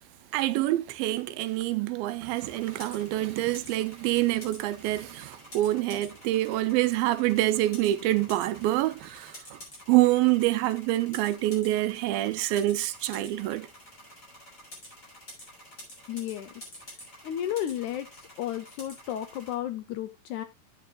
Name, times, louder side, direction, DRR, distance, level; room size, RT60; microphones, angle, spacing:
voice 1, 0.3-9.6 9.9-13.7, right 16 dB, 85° right, 2.5 m, -26 dB
sound 1, 2.4-19.5, equal, 20° left, 4.9 m, -49 dB
voice 2, 16.1-16.5 17.2-18.1 18.4-20.4, left 11 dB, 80° left, 1.7 m, -33 dB
12.0 x 8.3 x 2.2 m
omnidirectional pair, 4.2 m